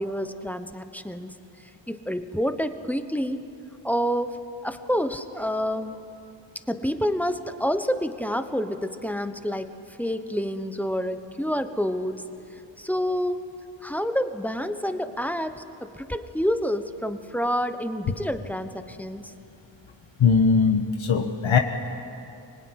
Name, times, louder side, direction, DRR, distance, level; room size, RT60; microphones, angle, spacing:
voice 1, 0.0-1.3 1.9-3.4 3.8-6.0 6.7-12.2 12.8-13.4 13.8-19.2, equal, 5° left, 9 dB, 1.0 m, -28 dB
voice 2, 20.2-21.6, left 5 dB, 75° left, 5 dB, 1.3 m, -20 dB
25.0 x 21.0 x 9.8 m, 2.7 s
wide cardioid pair, 125°, 47 cm